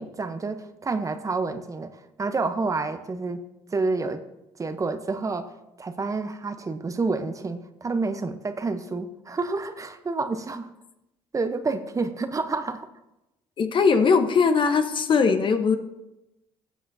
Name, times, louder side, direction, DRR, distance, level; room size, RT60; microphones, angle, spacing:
voice 1, 0.0-3.4 3.7-4.2 4.6-5.5 5.8-10.7 11.3-12.9, right 3 dB, 25° right, 9 dB, 0.8 m, -29 dB
voice 2, 13.6-15.8, left 5 dB, 45° left, 8 dB, 1.0 m, -20 dB
15.0 x 7.4 x 2.7 m, 0.93 s
supercardioid pair, 70°, 12 cm